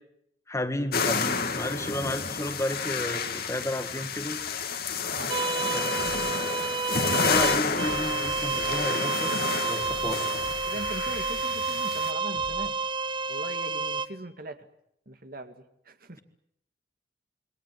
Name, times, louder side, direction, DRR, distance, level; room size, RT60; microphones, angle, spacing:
voice 1, 0.5-4.4 5.7-5.9 7.1-9.3 9.6-10.4, left 1 dB, 15° left, 8 dB, 1.9 m, -32 dB
sound 1, 0.9-12.1, left 5 dB, 55° left, 2.4 m, -30 dB
voice 2, 5.2-5.9 10.7-12.8 13.3-14.7 15.1-16.2, right 2 dB, 55° right, 8 dB, 2.2 m, -41 dB
sound 2, 5.3-14.1, right 4 dB, 30° right, 1.1 m, -30 dB
sound 3, 6.0-6.3 6.6-9.5 9.8-12.7, left 1 dB, 85° left, 4.8 m, -46 dB
28.0 x 23.5 x 7.5 m, 0.75 s
head